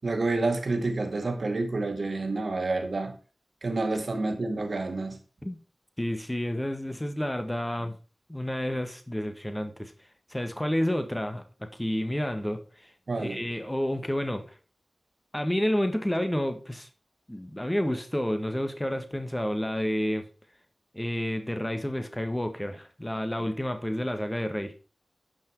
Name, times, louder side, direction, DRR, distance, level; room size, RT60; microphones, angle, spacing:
voice 1, 0.0-3.2 3.6-5.2 13.1-13.4, right 2 dB, 70° right, 2.1 m, -29 dB
voice 2, 6.0-8.0 8.3-9.9 10.3-12.9 13.2-14.5 15.3-16.9 17.3-20.3 20.9-24.7, equal, 15° left, 1.6 m, -30 dB
10.0 x 5.9 x 4.6 m
cardioid pair, 45°, 0 cm